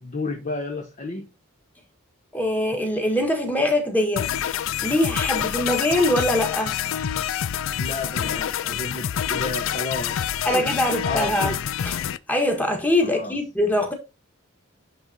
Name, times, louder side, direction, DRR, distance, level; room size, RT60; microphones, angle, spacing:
voice 1, 0.0-1.3 7.8-11.6 13.0-13.4, left 2 dB, 35° left, 0.8 m, -32 dB
voice 2, 2.3-4.3 4.8-6.8 10.4-11.5 11.8-12.0 12.3-13.9, left 1 dB, 5° left, 1.3 m, -23 dB
sound 1, 4.2-12.2, left 10 dB, 65° left, 0.4 m, -27 dB
10.5 x 3.7 x 2.7 m
head